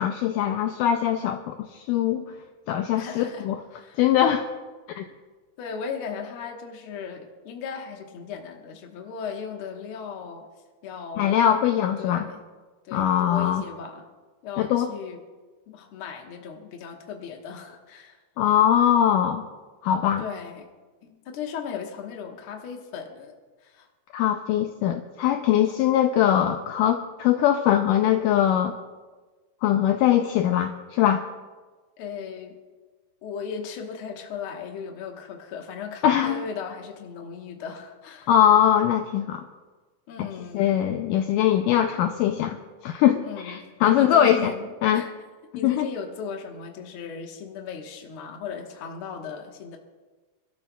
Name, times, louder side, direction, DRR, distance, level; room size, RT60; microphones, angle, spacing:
voice 1, 0.0-2.3 2.7-3.6 4.0-4.5 5.0-5.1 11.2-12.3 12.9-13.6 14.6-14.9 18.4-19.5 19.8-20.2 24.1-28.7 29.6-31.2 36.0-36.4 38.3-39.4 40.5-42.6 42.8-44.5 44.8-45.0 45.6-45.9, left 10 dB, 85° left, 6 dB, 1.9 m, -21 dB
voice 2, 2.9-3.5 3.7-4.0 5.6-10.5 10.8-11.3 12.0-12.4 12.8-14.0 14.4-15.2 15.7-18.2 20.2-20.7 21.0-23.3 23.6-23.9 32.0-32.6 33.2-38.3 40.1-40.8 43.2-45.1 45.5-49.8, left 6 dB, 60° left, 2 dB, 1.5 m, -37 dB
28.0 x 12.5 x 2.3 m, 1.3 s
omnidirectional pair, 4.3 m